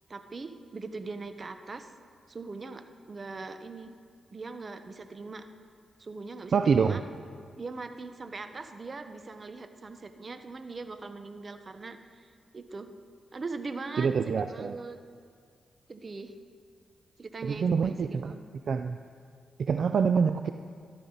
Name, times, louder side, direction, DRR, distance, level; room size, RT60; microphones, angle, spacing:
voice 1, 0.1-1.9 2.3-3.9 4.3-5.4 6.0-7.0 7.6-12.9 13.3-15.0 15.9-16.3 17.2-18.4, right 3 dB, 45° right, 8 dB, 1.0 m, -41 dB
voice 2, 6.5-7.0 14.0-14.7 17.4-18.3 18.7-19.0 19.6-20.5, right 6 dB, 65° right, 8 dB, 0.4 m, -26 dB
13.5 x 12.0 x 4.0 m, 2.2 s
cardioid pair, 60°, 0 cm